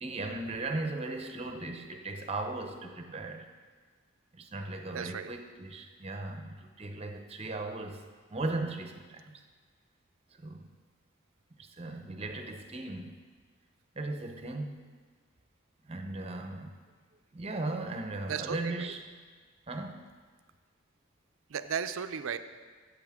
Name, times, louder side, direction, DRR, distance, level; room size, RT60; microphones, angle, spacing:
voice 1, 0.0-3.5 4.3-8.0 8.3-9.4 10.3-10.7 11.6-13.2 13.9-14.7 15.8-16.7 17.3-19.2 19.7-20.1, right 2 dB, 30° right, 5 dB, 0.7 m, -37 dB
voice 2, 4.9-5.3 18.3-18.9 21.5-22.4, right 7 dB, 80° right, 10 dB, 0.5 m, -35 dB
14.0 x 8.0 x 3.6 m, 1.5 s
head